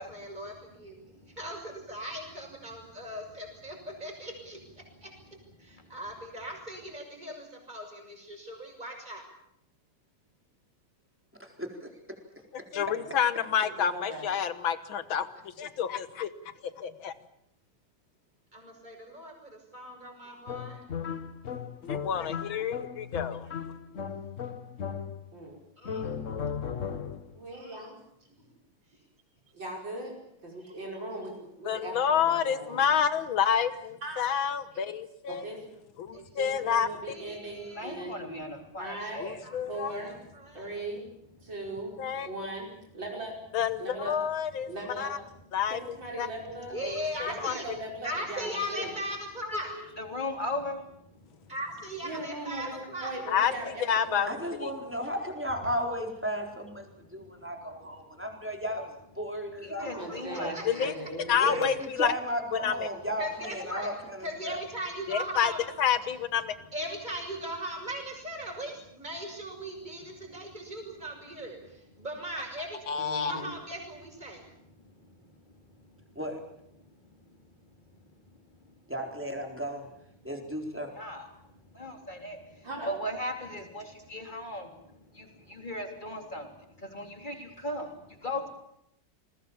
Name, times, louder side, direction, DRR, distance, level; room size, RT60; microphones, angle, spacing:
voice 1, 0.0-1.1 1.4-4.6 5.0-5.1 5.6-9.2 18.5-20.8 25.8-26.1 36.1-36.2 36.7-38.0 39.0-39.1 39.4-39.6 39.9-40.8 46.7-47.6 48.0-49.7 51.5-53.1 60.3-60.9 63.2-63.9 64.2-65.6 66.7-72.8 73.3-74.5 82.8-82.9, equal, 20° right, 3 dB, 6.7 m, -39 dB
voice 2, 0.9-1.4 4.8-5.1 5.7-6.0 36.2-36.4 37.7-39.4 41.4-41.5 50.0-51.5 55.6-55.7 59.6-60.8 70.4-70.5 74.3-76.2 76.8-77.8 78.3-78.8 81.0-81.4 81.7-88.5, left 1 dB, 25° left, 4 dB, 3.5 m, -39 dB
voice 3, 11.4-12.2 54.3-60.5 61.4-64.6 76.1-76.4 78.9-79.9 80.2-81.0, equal, 5° right, 2 dB, 4.1 m, -35 dB
voice 4, 12.7-15.3 15.6-16.3 16.8-17.1 21.8-23.5 31.7-35.5 36.0-36.9 39.2-39.9 42.0-42.3 43.5-44.7 45.0-45.2 45.5-46.3 46.8-47.0 47.4-47.5 53.3-54.3 54.6-54.7 60.7-60.9 61.3-62.1 62.6-62.9 65.1-65.5 65.8-66.6 72.9-73.4, left 8 dB, 85° left, 12 dB, 2.2 m, -28 dB
voice 5, 13.8-14.3 25.3-25.6 27.3-28.0 29.5-30.1 30.4-32.9 34.0-34.4 35.3-35.8 36.4-38.1 38.8-39.3 39.7-40.2 40.5-41.0 41.4-41.9 42.2-42.7 42.9-43.3 43.8-44.1 44.7-45.1 45.7-46.7 47.2-49.0 49.7-49.8 52.0-52.7 53.0-54.4 59.8-61.7 73.0-73.5 82.6-82.9 87.4-87.5, right 1 dB, 70° right, -1 dB, 6.1 m, -39 dB
sound 1, 20.5-25.4 25.8-27.4, left 7 dB, 45° left, 1.4 m, -36 dB
28.5 x 21.0 x 7.3 m, 0.77 s
omnidirectional pair, 2.1 m